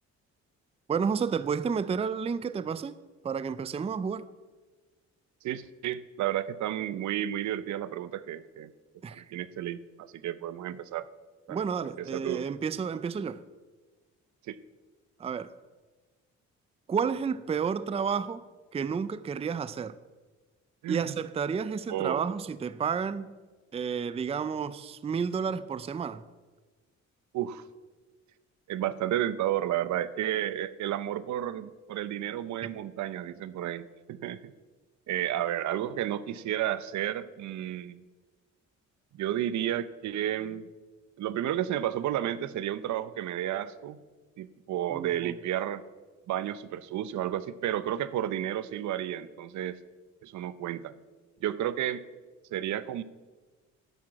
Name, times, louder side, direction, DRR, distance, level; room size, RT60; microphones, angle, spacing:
voice 1, 0.9-3.0 3.2-4.3 9.0-9.2 11.5-13.4 15.2-15.5 16.9-18.5 18.7-20.0 20.9-23.3 23.7-26.2 44.9-45.4, right 6 dB, 20° right, 0.4 m, -31 dB
voice 2, 5.4-8.7 9.1-11.1 11.5-11.6 12.0-12.5 14.5-14.6 20.8-21.1 21.9-22.3 27.3-27.6 28.7-34.5 35.1-38.0 39.2-40.6 41.2-44.0 44.4-45.8 46.3-49.8 50.2-50.9 51.4-52.0 52.5-53.0, right 11 dB, 70° right, 0.6 m, -32 dB
10.5 x 6.0 x 7.5 m
cardioid pair, 90°, 30 cm